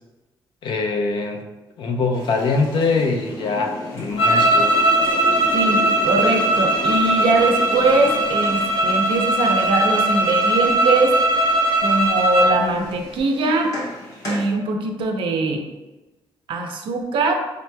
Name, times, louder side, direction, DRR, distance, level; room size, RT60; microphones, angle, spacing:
voice 1, 0.6-1.5 1.8-4.7, left 4 dB, 65° left, 3 dB, 0.6 m, -23 dB
sound 1, 2.1-14.5, left 1 dB, 40° left, 1.2 m, -36 dB
sound 2, 4.2-12.6, right 1 dB, 80° left, 1.0 m, -19 dB
voice 2, 5.5-11.2 11.8-13.8 14.2-15.6 16.5-17.3, right 2 dB, 75° right, 4 dB, 0.6 m, -21 dB
6.4 x 3.0 x 2.2 m, 1.1 s
cardioid pair, 160°, 9 cm